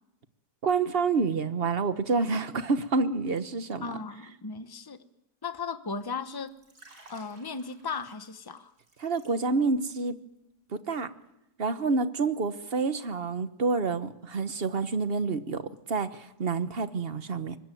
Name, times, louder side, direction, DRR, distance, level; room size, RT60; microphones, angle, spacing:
voice 1, 0.6-3.9 9.0-10.2 10.7-11.1 11.6-17.6, right 4 dB, 40° right, 11 dB, 1.3 m, -28 dB
voice 2, 3.8-5.0 5.4-6.5 7.1-8.7, left 5 dB, 15° left, 11 dB, 0.9 m, -36 dB
Liquid, 6.4-9.8 10.1-10.4, right 2 dB, 65° right, 6.0 m, -56 dB
24.0 x 20.5 x 9.2 m, 0.88 s
omnidirectional pair, 1.8 m